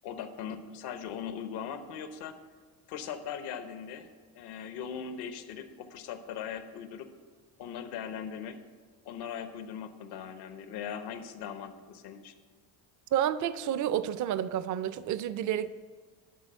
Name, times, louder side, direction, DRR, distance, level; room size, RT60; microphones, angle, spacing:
voice 1, 0.0-2.4 2.9-4.1 4.3-7.1 7.6-8.6 9.0-12.3, left 8 dB, 75° left, 9 dB, 1.0 m, -39 dB
voice 2, 13.1-15.7, right 10 dB, 50° right, 15 dB, 0.5 m, -30 dB
11.5 x 4.1 x 7.9 m, 1.5 s
cardioid pair, 115°, 39 cm